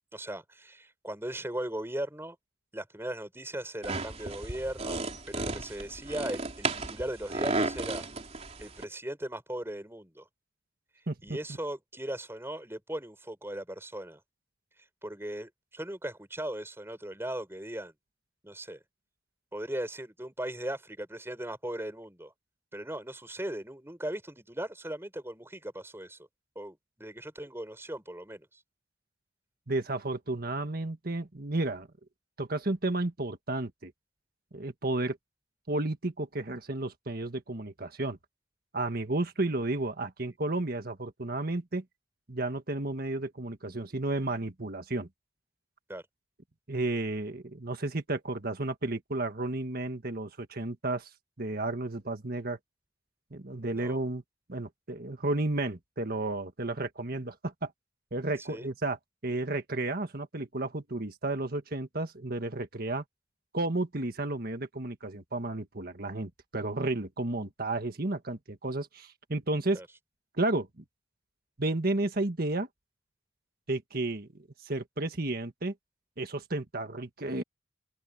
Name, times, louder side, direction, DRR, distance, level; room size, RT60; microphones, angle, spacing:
voice 1, 0.1-2.4 2.7-8.1 8.6-10.3 11.2-14.2 15.0-17.9 18.4-18.8 19.5-22.3 22.7-26.2 26.5-28.5 45.9-46.0 53.5-54.0 58.5-58.7 69.7-69.8, right 1 dB, 15° right, 6.7 m, -38 dB
sound 1, 3.8-8.8, right 3 dB, 35° right, 3.7 m, -34 dB
voice 2, 11.1-11.4 29.7-31.9 32.4-33.9 34.5-35.2 35.7-38.2 38.7-41.8 42.3-45.1 46.7-51.1 51.4-52.6 53.3-54.2 54.5-57.7 58.1-59.0 59.2-63.0 63.5-69.8 70.4-70.8 71.6-72.7 73.7-74.3 74.6-75.7 76.2-77.4, right 2 dB, 55° right, 1.6 m, -32 dB
open air
head